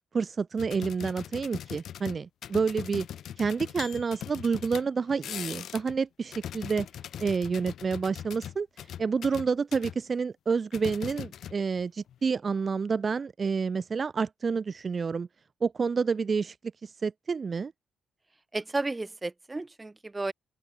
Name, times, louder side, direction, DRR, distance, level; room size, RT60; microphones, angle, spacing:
voice 1, 0.1-3.1 3.4-6.9 7.2-8.7 9.0-15.3 15.6-16.5 16.8-17.7, right 5 dB, 40° right, 0.7 m, -29 dB
sound 1, 0.6-6.0 6.2-10.0 10.7-11.8 12.1-12.3, left 10 dB, 70° left, 4.2 m, -40 dB
voice 2, 18.5-20.3, right 2 dB, 20° right, 2.2 m, -33 dB
open air
cardioid pair, 90°, 0 cm